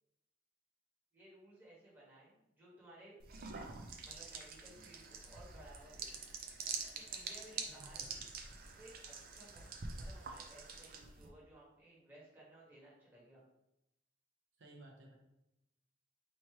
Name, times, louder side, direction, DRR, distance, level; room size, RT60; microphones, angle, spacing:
voice 1, 1.1-3.2 4.0-6.1 6.9-8.3 8.8-9.7 10.0-13.4, right 1 dB, 10° right, -8 dB, 1.5 m, -59 dB
sound 1, 3.2-11.3, right 4 dB, 55° right, 0.5 m, -46 dB
voice 2, 7.6-8.2 14.6-15.2, right 1 dB, 80° right, 0 dB, 0.8 m, -57 dB
3.1 x 3.0 x 4.5 m, 0.87 s
head